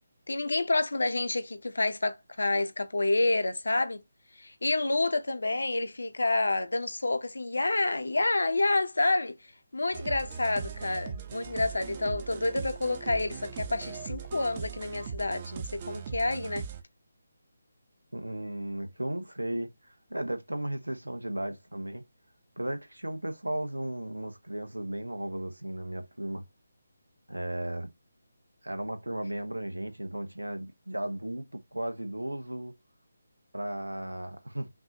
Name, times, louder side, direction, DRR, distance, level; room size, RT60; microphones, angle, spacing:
voice 1, 0.3-4.0 4.4-9.4 9.7-16.6, left 2 dB, 70° left, 0.9 m, -28 dB
sound 1, 9.9-16.8, right 6 dB, 30° right, 0.7 m, -39 dB
voice 2, 18.1-22.0 22.6-26.4 27.3-27.9 28.6-32.7 33.5-34.7, right 1 dB, 85° right, 1.0 m, -35 dB
5.9 x 2.5 x 2.8 m
figure-of-eight pair, 150°, 0 cm